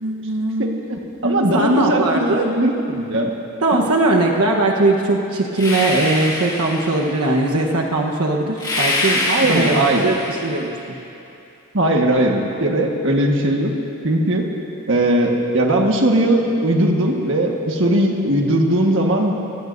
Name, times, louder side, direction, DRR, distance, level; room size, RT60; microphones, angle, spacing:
voice 1, 0.0-0.8 1.2-2.5 3.6-11.0, right 2 dB, 85° right, -1 dB, 1.1 m, -20 dB
voice 2, 0.6-3.3 3.7-3.8 9.3-10.1 11.7-13.7 14.0-14.5 14.9-19.3, right 1 dB, 55° right, 1 dB, 1.5 m, -19 dB
sound 1, 5.5-7.2 8.6-10.6, left 2 dB, 20° left, 2.8 m, -24 dB
25.0 x 19.0 x 2.7 m, 2.8 s
head